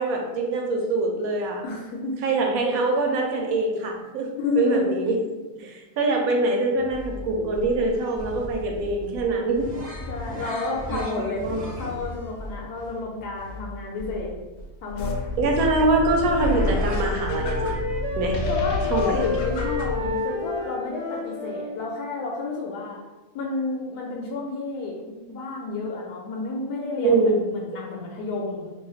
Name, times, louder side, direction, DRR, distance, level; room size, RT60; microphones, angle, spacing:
voice 1, 0.0-1.6 2.2-5.2 5.6-9.7 10.4-10.5 10.9-11.6 15.4-17.7 18.2-18.4 18.9-19.2 27.0-27.4, right 2 dB, 70° right, 2 dB, 1.0 m, -24 dB
voice 2, 1.6-2.2 4.4-5.0 10.1-11.5 11.8-14.3 14.8-15.1 18.5-23.0 23.3-28.7, left 3 dB, 85° left, -2 dB, 1.1 m, -30 dB
sound 1, 6.7-17.0, left 1 dB, 10° right, 0.4 m, -38 dB
sound 2, 15.0-20.1, left 2 dB, 65° left, 0.8 m, -29 dB
Wind instrument woodwind instrument, 16.0-21.7, left 4 dB, 40° left, 0.5 m, -30 dB
2.8 x 2.3 x 3.7 m, 1.2 s
omnidirectional pair, 1.6 m